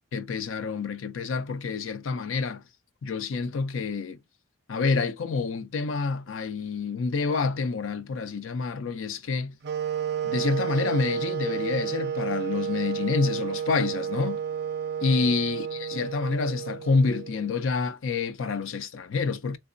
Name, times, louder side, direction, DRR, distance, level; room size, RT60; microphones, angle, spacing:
voice 1, 0.1-2.6 3.0-4.2 4.7-9.6 10.2-14.4 15.0-19.6, left 4 dB, 60° left, 0.5 m, -28 dB
sound 1, 9.6-17.6, right 8 dB, 50° right, 0.4 m, -31 dB
3.3 x 2.9 x 2.5 m
head